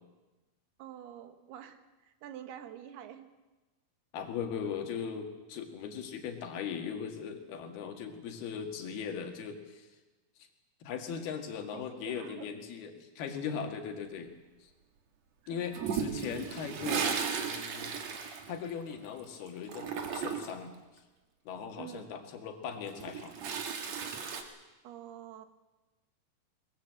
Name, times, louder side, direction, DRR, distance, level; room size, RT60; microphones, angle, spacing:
voice 1, 0.8-3.3 11.7-12.5 15.4-15.7 21.8-22.2 24.8-25.5, right 10 dB, 90° right, 9 dB, 3.3 m, -47 dB
voice 2, 4.1-9.9 10.8-14.3 14.6-14.7 15.5-17.9 18.5-20.7 21.5-23.3, left 7 dB, 80° left, 5 dB, 3.9 m, -39 dB
Toilet flush, 15.7-19.2 19.5-20.6 22.7-24.4, right 7 dB, 50° right, 2.5 m, -35 dB
22.0 x 20.5 x 7.6 m, 1.2 s
omnidirectional pair, 4.4 m